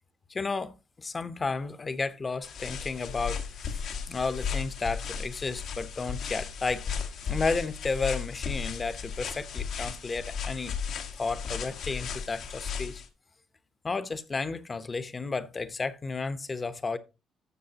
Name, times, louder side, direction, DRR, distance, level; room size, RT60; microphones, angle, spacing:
voice 1, 0.3-3.8 4.1-6.9 7.2-10.7 11.2-13.0 13.8-17.0, left 4 dB, 30° left, 0.9 m, -32 dB
sound 1, 2.4-13.1, left 6 dB, 75° left, 1.5 m, -35 dB
12.5 x 7.1 x 2.9 m
cardioid pair, 95°, 0 cm